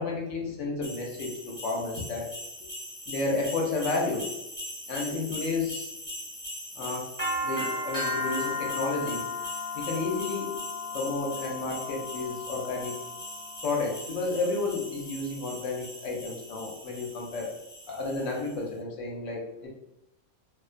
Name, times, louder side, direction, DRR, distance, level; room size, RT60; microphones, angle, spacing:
voice 1, 0.0-2.3 3.1-4.3 4.9-5.9 6.8-7.1 7.4-9.3 9.7-10.6 10.9-13.0 13.6-17.5 17.9-19.7, left 3 dB, 65° left, -1 dB, 0.8 m, -31 dB
sound 1, 0.8-18.5, left 2 dB, 15° left, 0.8 m, -37 dB
2.3 x 2.2 x 2.4 m, 0.88 s
omnidirectional pair, 1.5 m